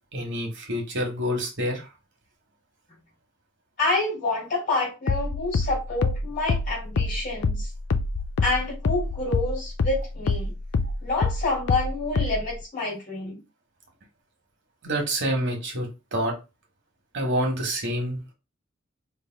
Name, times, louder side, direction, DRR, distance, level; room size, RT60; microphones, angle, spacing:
voice 1, 0.1-1.9 14.8-16.3 17.1-18.3, equal, 60° right, 1.3 m, -27 dB
voice 2, 3.8-7.7 8.4-10.5 11.0-13.4, left 3 dB, 40° left, 2.5 m, -28 dB
sound 1, 5.1-10.0 10.3-12.5, left 3 dB, 60° left, 0.4 m, -25 dB
4.5 x 3.2 x 2.2 m
head